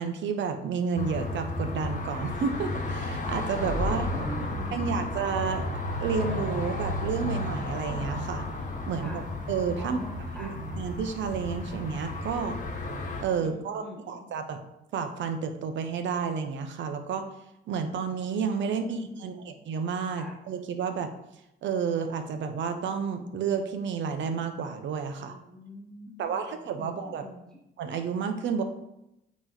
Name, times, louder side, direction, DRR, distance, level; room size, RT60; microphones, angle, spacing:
voice 1, 0.0-4.1 4.7-5.6 6.0-8.4 8.9-9.2 9.5-10.0 10.4-12.6 13.2-14.6 14.9-17.2 17.7-21.1 21.6-25.3 26.2-27.2 27.8-28.6, right 6 dB, 70° right, 7 dB, 0.8 m, -31 dB
sound 1, 1.0-13.2, left 2 dB, 40° left, 1.2 m, -33 dB
voice 2, 3.8-5.1 8.9-9.3 9.8-10.8 13.5-14.3 18.7-19.3 20.2-20.4 25.2-27.6, left 1 dB, 5° left, -1 dB, 1.0 m, -44 dB
8.6 x 3.1 x 4.0 m, 0.87 s
cardioid pair, 90°, 20 cm